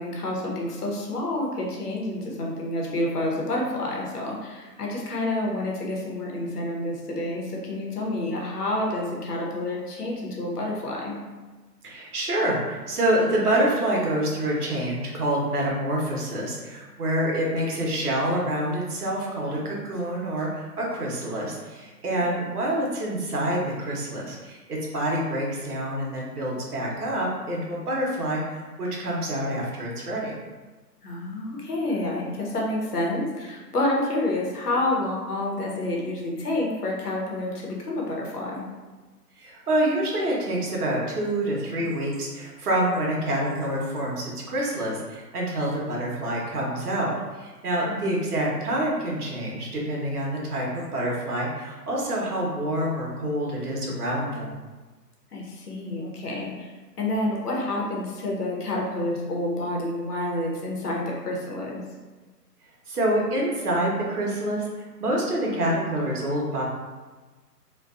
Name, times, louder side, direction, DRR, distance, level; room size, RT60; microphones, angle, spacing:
voice 1, 0.0-11.2 31.0-38.6 47.9-48.2 55.3-56.7 57.0-61.8, left 1 dB, 65° left, -2 dB, 0.8 m, -29 dB
voice 2, 11.8-30.3 39.4-47.1 47.4-54.5 62.9-64.7 65.0-66.6, right 1 dB, 65° right, -3 dB, 0.9 m, -27 dB
2.5 x 2.2 x 2.3 m, 1.3 s
figure-of-eight pair, 150°, 49 cm